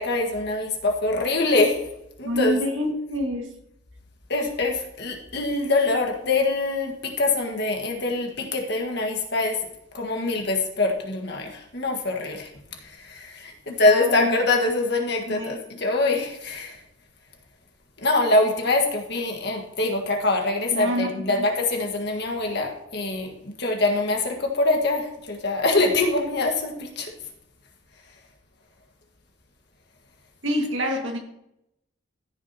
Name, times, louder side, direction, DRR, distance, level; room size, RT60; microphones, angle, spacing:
voice 1, 0.0-1.9 2.2-2.6 4.3-9.6 9.9-12.5 12.8-16.8 18.0-27.1, left 2 dB, 60° left, 2 dB, 1.6 m, -24 dB
voice 2, 2.2-3.5 13.7-14.4 15.3-15.6 20.7-21.5 30.4-31.2, equal, 75° right, 2 dB, 1.9 m, -27 dB
14.5 x 6.1 x 2.9 m, 0.81 s
head